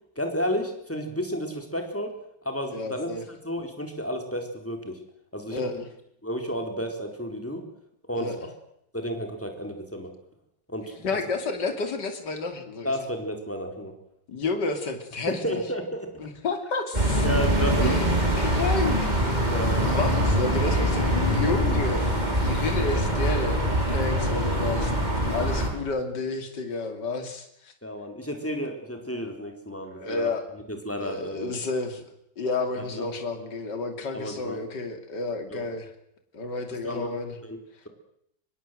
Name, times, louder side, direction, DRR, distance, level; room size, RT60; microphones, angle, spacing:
voice 1, 0.2-2.1 2.4-5.0 5.3-5.8 6.2-7.6 8.1-8.5 8.9-10.1 10.7-11.1 12.8-13.9 15.3-16.1 17.2-18.0 19.5-19.9 24.5-24.7 27.8-30.3 30.7-31.6 32.8-33.1 34.1-34.6 35.5-35.6 36.8-37.1 37.4-37.6, equal, 5° left, 4 dB, 4.2 m, -32 dB
voice 2, 2.7-3.2 5.5-5.8 8.1-8.4 11.0-12.9 14.3-15.6 16.2-17.2 17.8-18.1 18.4-24.9 25.2-27.7 29.9-30.5 31.0-32.0 32.4-35.9 36.3-37.4, left 3 dB, 60° left, 6 dB, 3.4 m, -31 dB
sound 1, 16.9-25.7, equal, 20° right, 5.6 m, -24 dB
25.5 x 21.5 x 7.9 m, 0.75 s
omnidirectional pair, 2.1 m